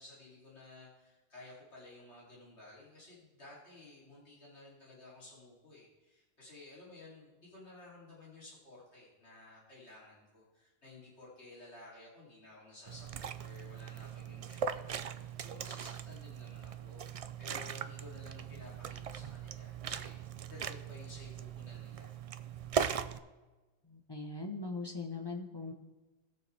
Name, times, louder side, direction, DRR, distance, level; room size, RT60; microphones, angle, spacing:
voice 1, 0.0-17.0 17.4-20.1 20.5-22.1, left 2 dB, 90° left, -6 dB, 3.3 m, -54 dB
Liquid, 12.9-23.2, right 7 dB, 60° right, 0.3 m, -40 dB
voice 2, 23.8-25.7, left 3 dB, 25° left, 1 dB, 1.0 m, -40 dB
20.0 x 6.8 x 3.4 m, 1.2 s
omnidirectional pair, 1.1 m